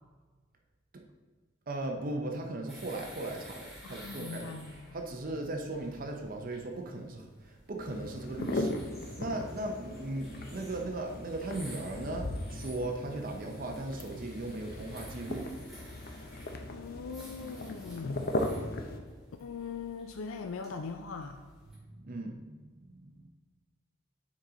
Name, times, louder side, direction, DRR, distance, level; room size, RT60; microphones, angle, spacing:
voice 1, 1.7-4.6 4.9-8.8 9.2-15.5 21.8-22.6 22.8-23.3, right 2 dB, 45° right, 3 dB, 0.6 m, -37 dB
sound 1, 2.7-21.8, equal, ahead, 2.1 m, -53 dB
voice 2, 3.8-5.0 16.7-18.2 19.4-21.4, left 5 dB, 85° left, 6 dB, 0.4 m, -40 dB
sound 2, 7.8-19.0, left 1 dB, 50° left, 0.6 m, -38 dB
7.3 x 4.9 x 3.9 m, 1.4 s
head